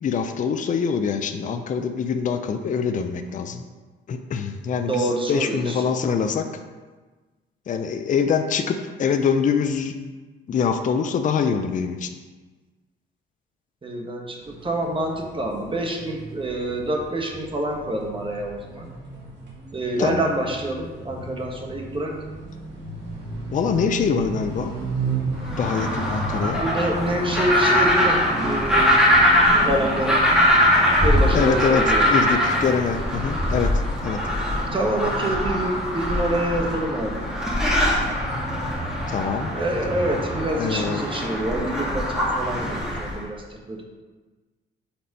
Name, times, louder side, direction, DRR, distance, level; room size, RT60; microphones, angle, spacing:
voice 1, 0.0-3.6 4.1-6.5 7.7-9.9 10.5-12.1 20.0-20.2 23.5-24.7 25.6-26.6 31.3-33.7 34.0-34.2 39.1-39.5 40.6-41.0, left 6 dB, 40° left, 7 dB, 0.5 m, -24 dB
voice 2, 4.9-5.8 13.8-18.9 19.7-22.2 26.4-29.0 29.6-30.3 31.0-32.1 34.7-37.3 39.5-43.8, right 1 dB, 25° right, 1 dB, 1.1 m, -27 dB
sound 1, 14.4-33.7, right 2 dB, 60° right, 1.9 m, -34 dB
sound 2, 25.4-43.2, equal, 5° right, 1.9 m, -22 dB
4.4 x 4.2 x 5.2 m, 1.3 s
cardioid pair, 90°, 20 cm